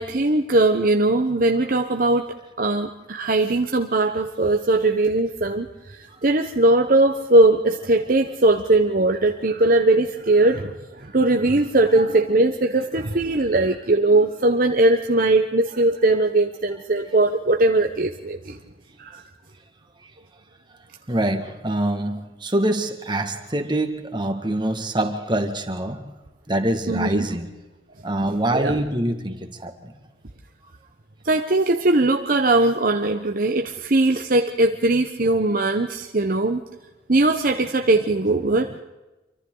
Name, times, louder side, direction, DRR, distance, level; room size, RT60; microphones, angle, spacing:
voice 1, 0.0-5.7 6.0-18.6 19.0-19.2 26.9-27.3 28.5-28.8 31.2-36.6 37.1-38.7, right 2 dB, 50° right, 4 dB, 1.0 m, -20 dB
voice 2, 21.1-26.0 26.5-27.5 28.0-29.9, right 1 dB, 25° right, 6 dB, 1.9 m, -25 dB
28.0 x 24.5 x 4.0 m, 1.1 s
head